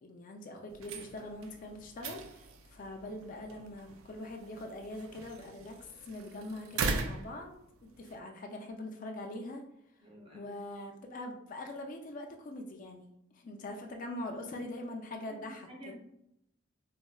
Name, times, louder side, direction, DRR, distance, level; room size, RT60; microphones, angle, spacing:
voice 1, 0.0-5.8 6.0-7.6 8.0-9.6 10.3-13.1 13.3-15.9, left 1 dB, 40° left, 3 dB, 0.3 m, -43 dB
sound 1, 0.7-8.2, right 4 dB, 85° right, 0.4 m, -41 dB
voice 2, 10.0-10.6 15.3-15.9, equal, 30° right, -1 dB, 0.7 m, -50 dB
4.1 x 2.0 x 2.2 m, 0.80 s
head